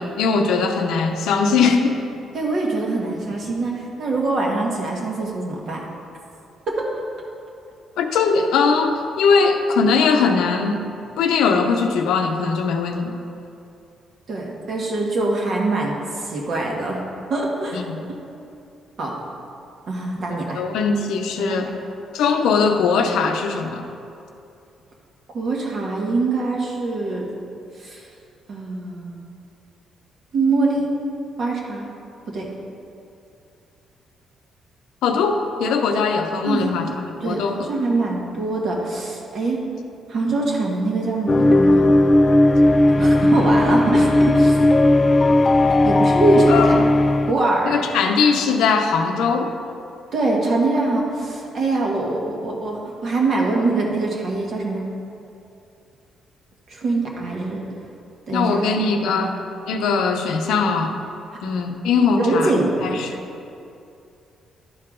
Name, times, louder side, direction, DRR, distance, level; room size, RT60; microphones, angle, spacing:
voice 1, 0.0-2.0 8.0-10.8 11.2-13.1 17.7-18.0 20.5-21.7 22.1-23.8 35.0-36.9 37.2-37.7 46.5-46.9 47.7-49.5 58.3-59.4 59.7-61.0 61.4-62.6 62.8-63.2, left 5 dB, 85° left, 5 dB, 0.6 m, -20 dB
voice 2, 2.3-5.8 6.7-6.8 14.3-17.0 17.3-17.8 19.0-19.1 19.9-20.6 21.4-21.7 25.3-27.3 27.8-28.1 28.5-29.3 30.3-30.9 31.4-31.9 32.3-32.5 36.4-36.7 37.1-39.6 40.1-41.9 43.0-44.7 45.8-46.8 47.3-47.8 50.1-54.8 56.7-57.6 58.3-58.6 59.0-59.3 62.2-62.8, right 2 dB, 60° right, -2 dB, 1.5 m, -23 dB
sound 1, 41.3-47.3, left 1 dB, 30° left, 0.3 m, -16 dB
11.0 x 4.7 x 3.7 m, 2.6 s
cardioid pair, 90°, 0 cm